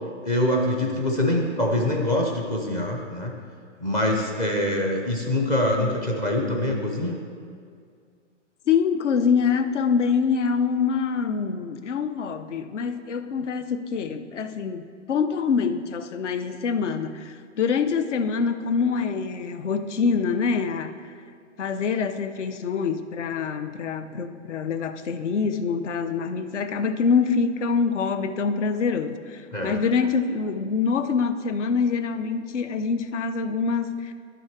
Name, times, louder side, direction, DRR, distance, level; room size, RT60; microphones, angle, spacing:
voice 1, 0.2-3.3 3.8-7.2 29.5-29.8, left 1 dB, 10° left, 0 dB, 0.4 m, -24 dB
voice 2, 8.7-21.0 21.6-34.1, left 5 dB, 70° left, 10 dB, 0.8 m, -25 dB
11.0 x 6.2 x 4.6 m, 2.2 s
hypercardioid pair, 140°, 37 cm